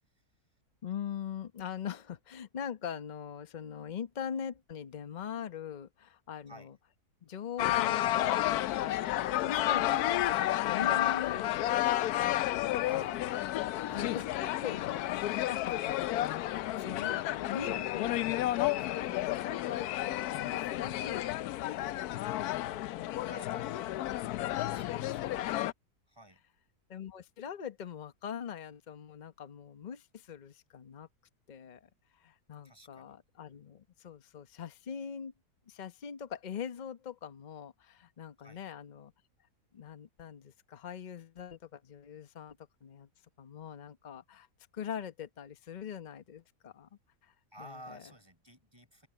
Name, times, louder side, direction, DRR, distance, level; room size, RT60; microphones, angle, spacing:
voice 1, 0.8-6.7 7.2-12.2 12.7-13.2 13.9-16.2 16.8-18.2 18.5-25.5 26.9-31.1 31.5-35.3 35.7-39.1 39.7-43.1 43.4-44.5 44.7-46.9 47.2-47.3 47.6-48.0, left 8 dB, 35° left, 0.9 m, -42 dB
sound 1, 7.6-25.7, left 14 dB, 75° left, 1.1 m, -31 dB
voice 2, 12.7-14.4 23.3-24.0 24.6-25.4 26.1-26.4 32.6-33.2 38.4-38.6 47.5-49.1, right 1 dB, 15° right, 6.7 m, -53 dB
open air
omnidirectional pair, 1.7 m